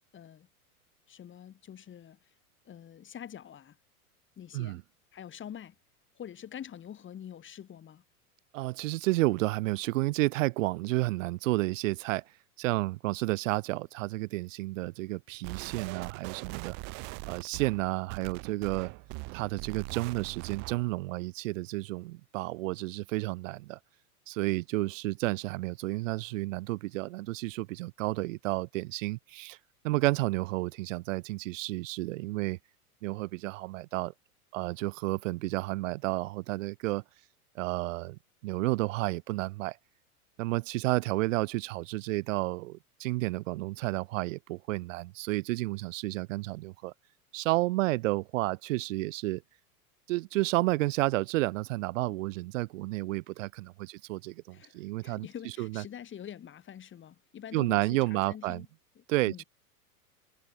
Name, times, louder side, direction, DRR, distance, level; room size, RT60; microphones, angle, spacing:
voice 1, 0.1-0.5 1.1-2.3 2.7-3.8 4.4-4.8 5.1-5.8 6.2-8.0 54.5-58.7 59.0-59.4, left 9 dB, 25° left, 3.5 m, -45 dB
voice 2, 8.5-12.2 12.6-16.8 17.3-18.9 19.3-23.8 24.3-29.6 29.8-32.6 33.0-34.1 34.5-37.0 37.5-39.8 40.4-46.9 47.3-49.4 50.1-55.3 55.6-55.8 57.5-58.6 59.1-59.4, right 20 dB, 55° right, 1.2 m, -31 dB
sound 1, 15.4-20.9, right 31 dB, 25° right, 0.4 m, -41 dB
hypercardioid pair, 100°, 45 cm